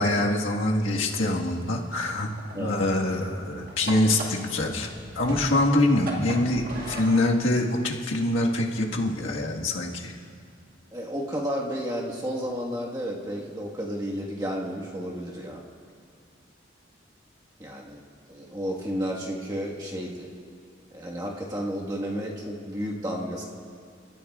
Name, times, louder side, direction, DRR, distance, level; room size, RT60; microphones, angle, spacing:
voice 1, 0.0-2.3 2.6-4.9 5.1-10.1, left 1 dB, 90° left, -1 dB, 1.6 m, -24 dB
sound 1, 2.0-7.3, right 1 dB, 45° right, 1.8 m, -37 dB
voice 2, 10.9-15.6 17.6-18.0 18.3-20.3 20.9-23.4, equal, 20° right, -3 dB, 1.5 m, -32 dB
29.5 x 14.0 x 2.4 m, 2.3 s
head